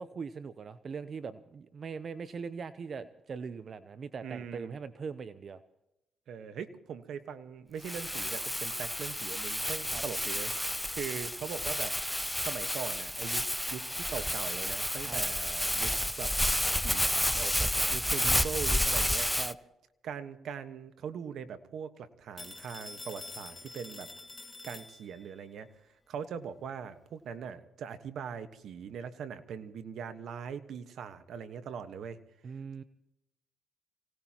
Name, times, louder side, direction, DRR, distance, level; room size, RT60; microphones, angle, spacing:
voice 1, 0.0-5.6 9.9-10.0 15.1-15.2 19.4-19.6 32.4-32.8, right 5 dB, 45° right, 13 dB, 0.7 m, -41 dB
voice 2, 4.2-4.7 6.3-11.9 12.4-13.4 13.7-15.9 16.2-16.3 16.8-17.0 17.3-19.3 20.0-24.1 24.6-25.7 26.1-32.2, right 7 dB, 70° right, 10 dB, 1.3 m, -41 dB
Crumpling crinkling, 7.8-19.5, equal, 5° left, 0.6 m, -31 dB
Telephone, 22.4-25.4, left 3 dB, 25° left, 1.9 m, -46 dB
25.0 x 18.0 x 3.0 m, 0.89 s
cardioid pair, 90°, 0 cm